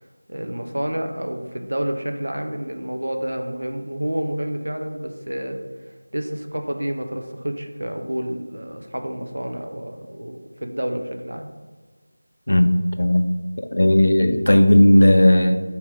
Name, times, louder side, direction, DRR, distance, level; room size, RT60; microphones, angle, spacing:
voice 1, 0.3-5.6 6.1-11.5, right 1 dB, 85° right, 0.6 m, -29 dB
voice 2, 13.0-13.3 13.7-15.6, left 1 dB, 70° left, 0.4 m, -15 dB
3.6 x 2.8 x 3.1 m
figure-of-eight pair, 175°, 0 cm